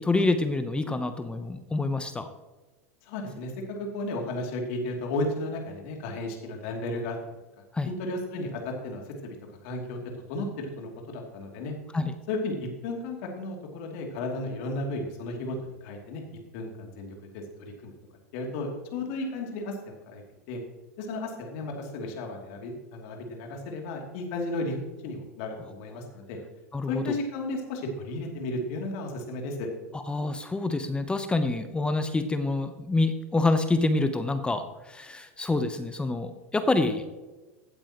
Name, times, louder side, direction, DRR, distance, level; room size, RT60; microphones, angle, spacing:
voice 1, 0.0-2.3 7.7-7.9 11.9-12.1 26.7-27.1 29.9-37.1, left 2 dB, 10° left, 9 dB, 0.9 m, -27 dB
voice 2, 3.0-3.5 3.8-7.2 7.9-9.4 9.6-10.0 10.3-11.7 12.3-16.2 16.5-17.9 18.3-20.2 20.5-20.6 21.0-24.8 25.0-26.4 26.9-29.7, left 2 dB, 60° left, 2 dB, 2.8 m, -34 dB
15.5 x 8.8 x 3.0 m, 1.1 s
hypercardioid pair, 90°, 8 cm